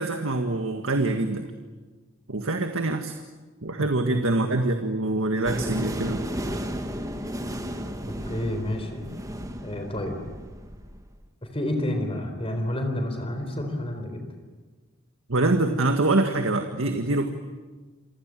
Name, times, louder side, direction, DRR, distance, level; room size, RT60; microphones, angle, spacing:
voice 1, 0.0-1.5 2.3-3.1 3.6-6.2 15.3-17.3, right 2 dB, 80° right, 5 dB, 1.8 m, -25 dB
voice 2, 3.8-4.2 8.3-9.0 9.6-10.2 11.5-14.2, left 1 dB, 30° left, 5 dB, 4.0 m, -29 dB
sound 1, 5.5-11.1, equal, 15° right, 1.7 m, -33 dB
28.5 x 25.0 x 7.7 m, 1.3 s
head